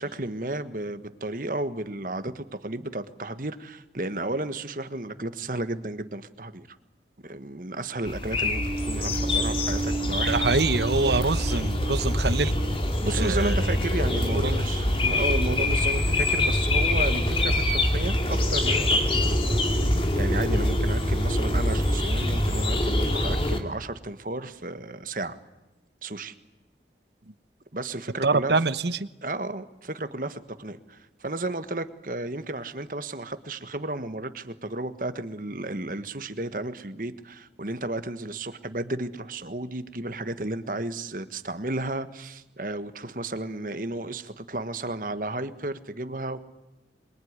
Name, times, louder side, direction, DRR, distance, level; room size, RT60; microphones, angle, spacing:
voice 1, 0.0-6.8 7.2-10.4 13.0-19.2 20.1-25.4 26.0-26.3 27.7-28.6 29.2-46.4, right 2 dB, 50° right, 11 dB, 1.5 m, -33 dB
sound 1, 8.0-23.6, left 1 dB, 30° left, 2.5 m, -25 dB
sound 2, 8.6-15.0, right 3 dB, 30° right, 1.1 m, -36 dB
voice 2, 10.3-12.6 13.2-13.5 14.4-14.5 28.2-29.0, right 3 dB, 75° right, 14 dB, 1.1 m, -24 dB
Musical instrument, 11.0-18.0, equal, 10° left, 3.1 m, -39 dB
26.5 x 22.5 x 9.7 m, 1.0 s
head